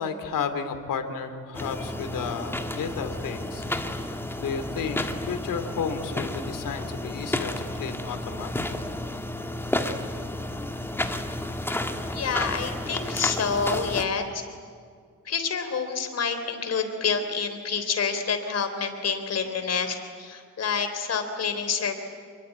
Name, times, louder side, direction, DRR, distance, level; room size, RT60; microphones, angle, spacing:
voice 1, 0.0-3.7 4.0-8.9, left 6 dB, 85° left, 7 dB, 2.8 m, -33 dB
sound 1, 1.5-14.1, left 1 dB, 5° left, 1.6 m, -31 dB
voice 2, 12.1-14.4 15.3-22.0, left 5 dB, 50° left, 7 dB, 3.6 m, -28 dB
27.5 x 22.0 x 9.4 m, 2.1 s
wide cardioid pair, 160°, 32 cm